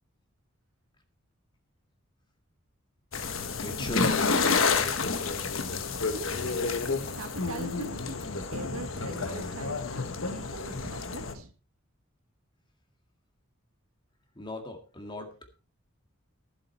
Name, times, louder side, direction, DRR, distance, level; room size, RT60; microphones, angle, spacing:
sound 1, 3.1-11.3, left 4 dB, 70° left, 1.4 m, -29 dB
voice 1, 3.6-4.1 14.3-15.3, left 1 dB, 20° left, 5 dB, 2.0 m, -38 dB
voice 2, 6.1-6.7 7.1-8.2 8.5-11.5, right 2 dB, 85° right, 7 dB, 1.7 m, -41 dB
15.5 x 7.6 x 4.4 m, 0.35 s
head